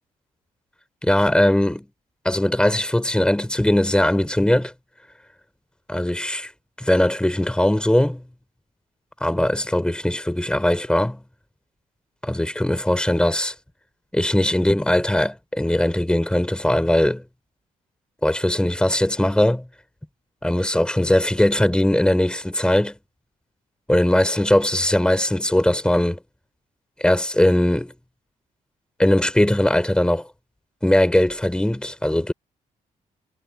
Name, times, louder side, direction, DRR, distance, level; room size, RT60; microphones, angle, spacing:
voice 1, 1.0-1.9 2.2-4.7 5.9-6.5 6.8-8.2 9.2-11.2 12.2-13.5 14.1-17.2 18.2-19.6 20.4-22.9 23.9-26.2 27.0-27.9 29.0-30.3 30.8-32.3, left 1 dB, 5° left, 5.0 m, -20 dB
cardioid pair, 80°, 14 cm